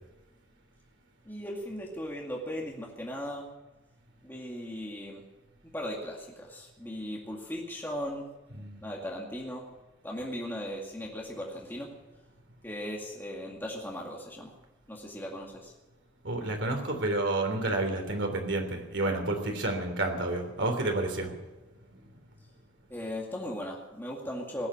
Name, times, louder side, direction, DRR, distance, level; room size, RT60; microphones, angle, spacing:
voice 1, 1.2-3.5 4.2-5.2 5.7-8.3 8.8-9.7 10.0-11.9 12.6-14.5 14.9-15.7 22.9-24.7, equal, 10° left, -2 dB, 2.2 m, -37 dB
voice 2, 16.2-21.4 21.9-22.2, right 2 dB, 70° right, 4 dB, 3.4 m, -30 dB
19.5 x 8.6 x 8.6 m, 1.1 s
head